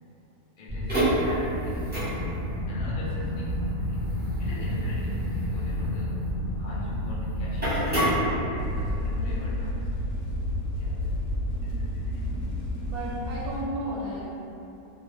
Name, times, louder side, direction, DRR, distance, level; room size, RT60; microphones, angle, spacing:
voice 1, 0.6-4.1 4.4-6.3 6.6-8.2 8.4-9.9 10.8-11.1 11.6-12.4 13.2-13.3, left 1 dB, 65° left, -7 dB, 0.4 m, -42 dB
sound 1, 0.7-8.9, equal, 10° right, 0.5 m, -28 dB
sound 2, 8.6-13.6, left 1 dB, 85° left, 1.1 m, -30 dB
voice 2, 12.8-14.4, right 1 dB, 85° right, -5 dB, 1.1 m, -34 dB
2.7 x 2.2 x 3.1 m, 2.9 s
omnidirectional pair, 1.6 m